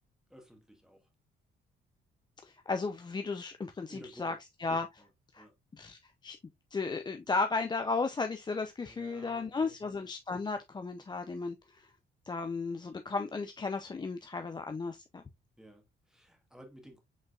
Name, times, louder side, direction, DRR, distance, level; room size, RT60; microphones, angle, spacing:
voice 1, 0.3-1.1 3.9-4.4 5.0-5.1 5.4-5.5 8.9-9.8 15.6-17.0, equal, 5° right, 1.5 m, -54 dB
voice 2, 2.4-4.3 4.6-5.0 5.3-5.5 5.7-6.4 6.7-11.9 12.3-15.2, left 4 dB, 20° left, 0.5 m, -35 dB
5.3 x 3.8 x 2.4 m
cardioid pair, 90°, 20 cm